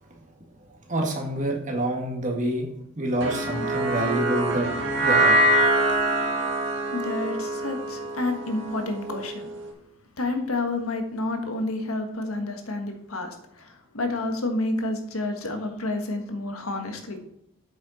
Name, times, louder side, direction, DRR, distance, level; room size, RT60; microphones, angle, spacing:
voice 1, 0.6-2.7 3.0-4.7 5.0-5.4, right 1 dB, 35° right, 0 dB, 1.9 m, -27 dB
sound 1, 3.2-9.6, right 1 dB, 60° right, 1.8 m, -24 dB
voice 2, 6.9-9.5 10.2-17.3, left 2 dB, 85° left, 5 dB, 1.5 m, -29 dB
8.5 x 7.0 x 4.2 m, 0.78 s
head